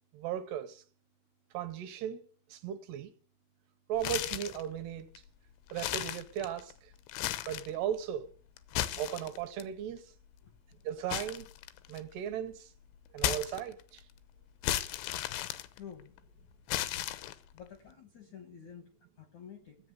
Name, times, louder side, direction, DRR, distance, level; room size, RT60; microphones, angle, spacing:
voice 1, 0.1-0.8 1.5-3.1 3.9-5.1 5.7-6.9 7.5-8.3 9.0-10.1 10.8-11.5 11.9-12.7 13.1-14.0, right 10 dB, 70° right, 2.8 m, -37 dB
sound 1, 4.0-4.7 5.2-5.3 5.7-6.7 7.1-7.8 8.6-9.6 11.1-12.1 13.2-14.0 14.6-16.2 16.7-17.6, left 13 dB, 85° left, 3.4 m, -35 dB
voice 2, 15.7-16.2 17.5-18.9 19.2-19.8, left 8 dB, 70° left, 1.8 m, -49 dB
16.5 x 8.4 x 8.0 m
omnidirectional pair, 5.3 m